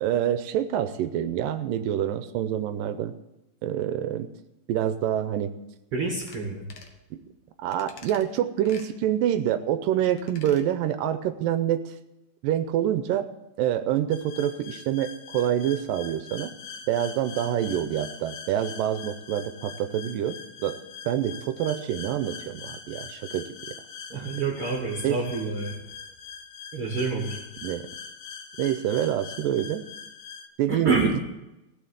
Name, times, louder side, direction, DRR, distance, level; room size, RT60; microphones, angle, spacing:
voice 1, 0.0-3.1 3.6-4.3 4.7-5.5 7.1-7.2 7.6-11.8 12.4-13.3 13.6-16.5 16.9-20.8 21.1-23.7 25.0-25.2 27.6-27.9 28.6-29.8 30.6-31.1, right 11 dB, 85° right, 11 dB, 2.3 m, -26 dB
voice 2, 5.9-6.6 24.1-25.7 26.7-27.4 30.7-31.2, right 3 dB, 45° right, -1 dB, 2.2 m, -27 dB
sound 1, 6.2-6.4 6.7-7.0 7.7-8.2 8.6-8.9 10.1-10.6 11.0-11.1, left 5 dB, 55° left, 1.6 m, -48 dB
sound 2, 14.1-30.5, left 7 dB, 80° left, 1.4 m, -43 dB
16.0 x 6.8 x 8.1 m, 0.93 s
omnidirectional pair, 4.0 m